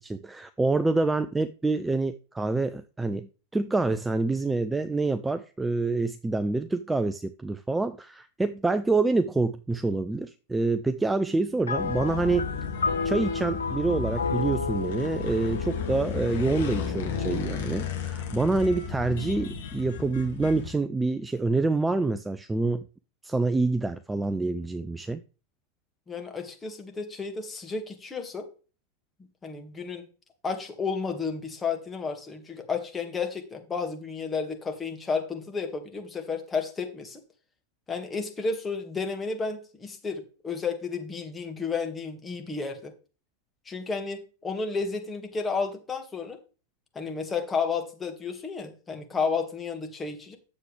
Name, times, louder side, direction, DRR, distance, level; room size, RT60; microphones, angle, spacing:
voice 1, 0.0-12.5 13.0-22.9 23.2-25.2, right 3 dB, 10° right, 0.5 m, -27 dB
sound 1, 11.7-17.2, left 4 dB, 75° left, 0.5 m, -32 dB
sound 2, 11.8-20.7, left 6 dB, 55° left, 2.1 m, -33 dB
voice 2, 26.1-28.5 29.4-30.1 30.4-37.2 37.9-42.9 43.7-46.4 47.0-50.4, left 5 dB, 15° left, 2.0 m, -32 dB
9.7 x 7.5 x 3.3 m
figure-of-eight pair, 90°, 0 cm